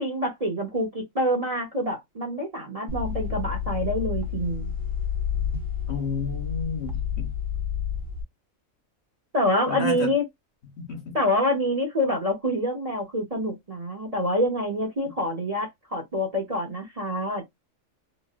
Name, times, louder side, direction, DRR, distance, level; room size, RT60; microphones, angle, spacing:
voice 1, 0.0-4.7 9.3-10.2 11.1-17.4, equal, 35° right, 0.8 m, -26 dB
sound 1, 2.9-8.2, left 8 dB, 70° right, 1.2 m, -30 dB
voice 2, 5.9-7.3 9.7-10.1 10.8-11.2, left 4 dB, 55° left, 1.3 m, -31 dB
3.0 x 2.6 x 2.5 m
omnidirectional pair, 1.4 m